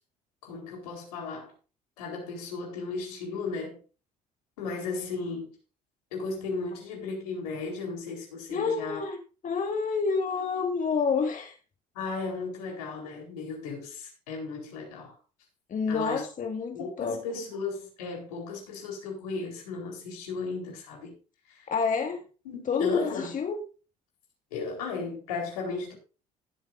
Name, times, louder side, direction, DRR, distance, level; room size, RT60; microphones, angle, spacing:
voice 1, 0.4-1.5 2.0-3.8 4.6-5.6 6.1-9.0 11.9-15.2 15.9-16.2 16.7-21.1 21.5-21.7 22.4-23.3 24.5-25.9, left 4 dB, 85° left, 4.2 m, -35 dB
voice 2, 8.5-11.6 15.7-17.2 21.7-22.2 22.7-23.6, left 5 dB, 45° left, 2.0 m, -28 dB
18.0 x 7.9 x 2.7 m
hypercardioid pair, 60°, 19 cm